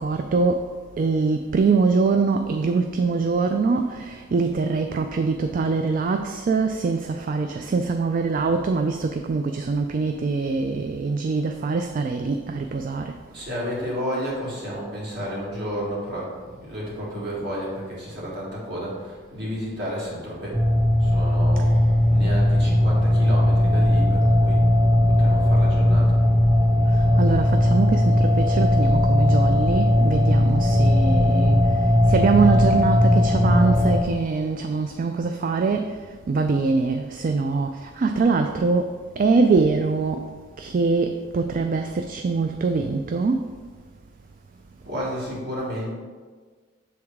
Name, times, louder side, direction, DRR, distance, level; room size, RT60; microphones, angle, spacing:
voice 1, 0.0-13.2 26.9-40.3 40.6-43.5, right 4 dB, 45° right, 6 dB, 0.3 m, -23 dB
voice 2, 13.3-20.6 21.0-21.7 22.1-24.6 25.1-26.2 44.8-45.9, equal, 60° right, -5 dB, 2.0 m, -31 dB
sound 1, 20.5-34.0, left 1 dB, 15° right, 0.7 m, -18 dB
7.1 x 3.6 x 4.6 m, 1.5 s
head